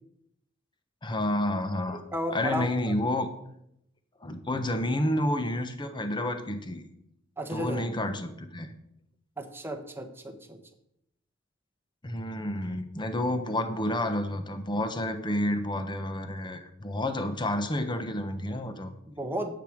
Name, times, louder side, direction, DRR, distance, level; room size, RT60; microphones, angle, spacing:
voice 1, 1.0-2.0 2.3-3.3 4.2-6.8 7.5-8.7 12.0-18.9, left 1 dB, 25° left, 8 dB, 0.9 m, -30 dB
voice 2, 2.1-2.6 7.4-7.8 9.4-10.6 19.1-19.5, right 1 dB, 10° right, 5 dB, 1.2 m, -33 dB
10.5 x 8.0 x 5.0 m, 0.77 s
head